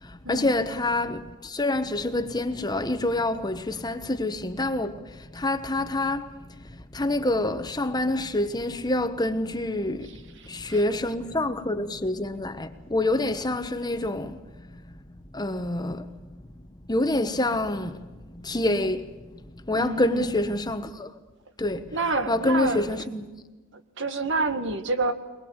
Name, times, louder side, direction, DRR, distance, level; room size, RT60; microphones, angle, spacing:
voice 1, 0.0-6.3 6.6-14.4 14.7-14.8 15.3-16.2 16.9-18.0 18.3-21.1 21.6-22.0 22.3-23.2, left 2 dB, 20° left, 1.2 m, -27 dB
voice 2, 19.7-20.2 21.9-22.9 23.7-25.1, right 3 dB, 60° right, 1.9 m, -28 dB
23.0 x 21.5 x 8.1 m
head